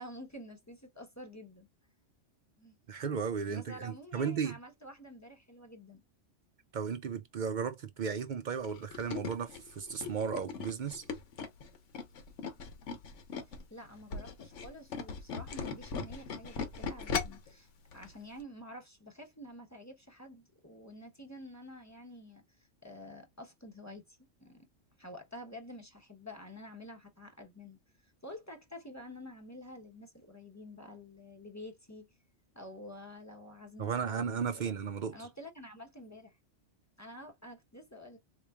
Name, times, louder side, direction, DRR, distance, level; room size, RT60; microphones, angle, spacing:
voice 1, 0.0-1.7 2.6-2.8 3.5-6.0 13.4-24.7 25.0-32.1 32.5-34.8 35.1-36.4 37.0-38.2, left 1 dB, 15° left, 0.8 m, -49 dB
voice 2, 2.9-4.6 6.7-11.0 33.8-35.2, right 6 dB, 60° right, 0.5 m, -35 dB
Tools, 8.6-13.6 14.0-17.5 17.9-18.1 18.4-18.5, left 5 dB, 70° left, 1.2 m, -38 dB
4.2 x 2.9 x 2.3 m
omnidirectional pair, 1.3 m